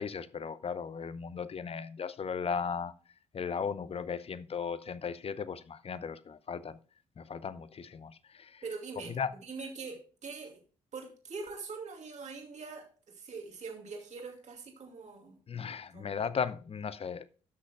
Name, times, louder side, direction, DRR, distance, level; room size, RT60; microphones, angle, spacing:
voice 1, 0.0-2.9 3.3-6.8 7.2-8.6 9.1-9.3 15.5-17.3, left 6 dB, 40° left, 0.7 m, -36 dB
voice 2, 8.6-9.2 9.4-10.6 10.9-15.4 15.9-16.2, right 4 dB, 50° right, 2.6 m, -43 dB
15.0 x 6.3 x 2.3 m
hypercardioid pair, 50°, 15 cm